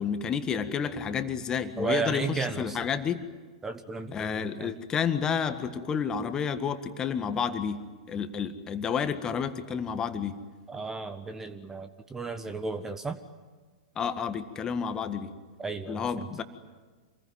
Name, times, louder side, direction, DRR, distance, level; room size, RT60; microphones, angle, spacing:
voice 1, 0.0-3.2 4.1-7.8 8.1-10.4 13.9-15.3 15.9-16.4, left 7 dB, 20° left, 10 dB, 1.7 m, -30 dB
voice 2, 1.8-2.8 3.6-4.7 10.7-13.2 15.6-16.3, right 4 dB, 10° right, 9 dB, 1.2 m, -34 dB
27.5 x 21.0 x 9.5 m, 1.4 s
figure-of-eight pair, 100°, 3 cm